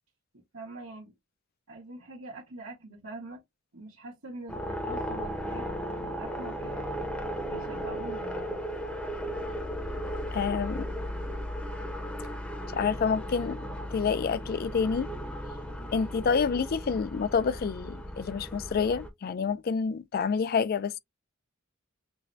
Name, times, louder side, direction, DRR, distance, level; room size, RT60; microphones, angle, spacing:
voice 1, 0.3-1.1 1.7-3.4 3.7-6.8 7.5-8.6, right 2 dB, 85° right, 1.3 m, -44 dB
sound 1, 4.5-19.1, equal, 5° left, 0.7 m, -36 dB
voice 2, 10.3-10.9 12.7-13.6 13.9-15.1 15.9-21.0, left 5 dB, 45° left, 0.4 m, -28 dB
6.0 x 2.1 x 2.6 m
head